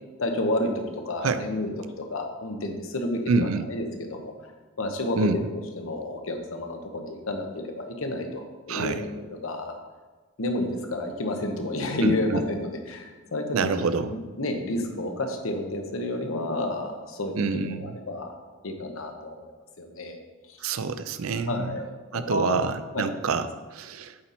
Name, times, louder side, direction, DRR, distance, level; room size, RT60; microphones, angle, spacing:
voice 1, 0.2-1.7 2.0-4.3 4.8-5.4 5.8-9.1 9.4-9.8 10.4-18.3 18.6-19.5 19.8-20.2 20.5-20.6 21.5-22.6 22.9-23.1, left 1 dB, 75° left, 4 dB, 0.9 m, -30 dB
voice 2, 3.3-3.7 5.2-5.5 8.7-9.0 12.0-12.4 13.5-14.2 17.3-18.0 20.6-21.8 22.1-24.2, right 4 dB, 80° right, 11 dB, 0.4 m, -27 dB
8.6 x 4.3 x 4.1 m, 1.3 s
head